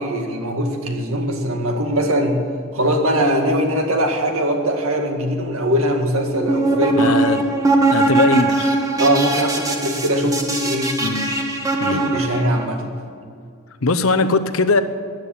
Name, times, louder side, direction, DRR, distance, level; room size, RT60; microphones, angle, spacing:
voice 1, 0.0-2.4 2.7-7.2 9.0-10.9 11.9-13.0, equal, 75° right, 4 dB, 2.0 m, -21 dB
sound 1, 6.3-12.7, right 2 dB, 15° right, 1.5 m, -20 dB
voice 2, 7.0-7.4 7.9-8.7 11.0-11.3 11.8-12.0 13.8-14.8, left 3 dB, 75° left, 10 dB, 0.9 m, -19 dB
14.0 x 10.5 x 8.7 m, 2.3 s
head